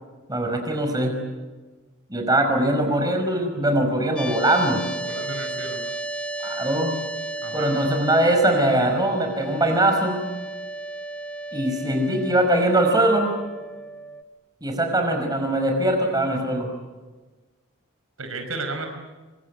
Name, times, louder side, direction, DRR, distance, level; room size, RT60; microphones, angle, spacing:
voice 1, 0.3-1.1 2.1-4.8 6.4-6.9 7.5-10.2 11.5-13.3 14.6-16.7, right 1 dB, 20° right, 3 dB, 5.2 m, -21 dB
sound 1, 4.2-14.2, right 2 dB, 5° left, 0.9 m, -34 dB
voice 2, 5.0-5.8 7.4-7.9 18.2-18.9, right 3 dB, 70° right, 5 dB, 5.1 m, -33 dB
25.0 x 25.0 x 9.6 m, 1.2 s
head